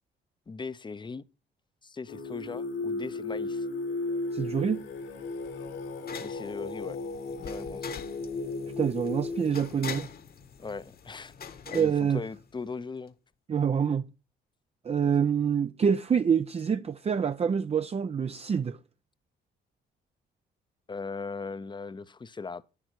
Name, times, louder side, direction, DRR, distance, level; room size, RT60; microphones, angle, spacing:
voice 1, 0.5-1.3 1.8-3.7 6.2-7.0 7.4-7.9 10.6-13.1 20.9-22.6, left 4 dB, 25° left, 0.8 m, -39 dB
Singing, 2.1-9.9, left 3 dB, 85° left, 3.7 m, -35 dB
voice 2, 4.3-4.8 8.8-10.1 11.7-12.2 13.5-14.0 14.8-18.8, right 7 dB, 30° right, 0.6 m, -26 dB
sound 1, 4.5-12.8, left 7 dB, 50° left, 1.5 m, -45 dB
10.5 x 9.8 x 4.6 m
cardioid pair, 90°, 20 cm